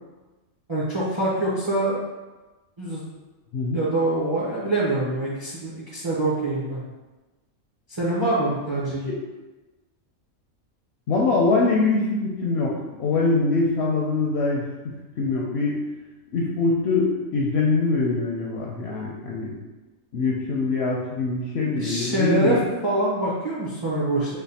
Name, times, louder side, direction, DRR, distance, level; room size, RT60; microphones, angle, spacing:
voice 1, 0.7-2.0 2.8-3.1 3.7-6.8 7.9-9.1 21.8-22.6 22.8-24.4, right 2 dB, 35° right, -6 dB, 0.5 m, -25 dB
voice 2, 11.1-14.6 15.2-15.8 16.3-19.5 20.1-22.7, left 3 dB, 65° left, -3 dB, 0.6 m, -23 dB
3.4 x 2.2 x 4.0 m, 1.2 s
omnidirectional pair, 1.5 m